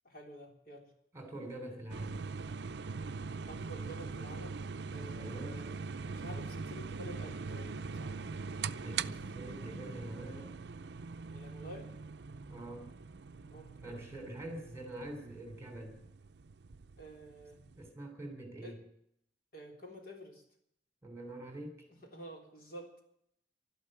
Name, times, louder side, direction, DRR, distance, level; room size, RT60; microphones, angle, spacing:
voice 1, 0.0-0.9 3.5-4.6 4.9-8.1 11.3-11.9 13.5-14.1 17.0-17.6 18.6-18.8 19.5-20.4 22.1-22.9, equal, 50° left, 1 dB, 3.7 m, -50 dB
voice 2, 1.1-2.2 5.2-5.6 8.5-10.5 12.5-12.9 13.8-16.0 17.6-18.8 21.0-21.9, right 1 dB, 15° right, 5 dB, 3.3 m, -45 dB
sound 1, 1.9-17.9, right 5 dB, 60° right, 0.5 m, -42 dB
12.5 x 12.0 x 9.0 m, 0.72 s
head